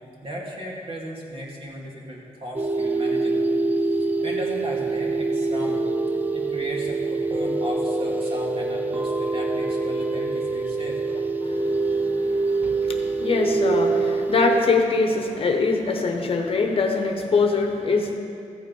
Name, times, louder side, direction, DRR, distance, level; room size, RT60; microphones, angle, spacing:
voice 1, 0.2-3.5 4.0-5.9 6.3-11.0, equal, 45° right, -3 dB, 2.4 m, -36 dB
sound 1, 2.5-14.6, right 3 dB, 15° right, 0.6 m, -25 dB
voice 2, 11.4-18.2, left 4 dB, 45° left, 4 dB, 1.1 m, -24 dB
14.5 x 8.5 x 5.4 m, 2.5 s
wide cardioid pair, 145°, 13 cm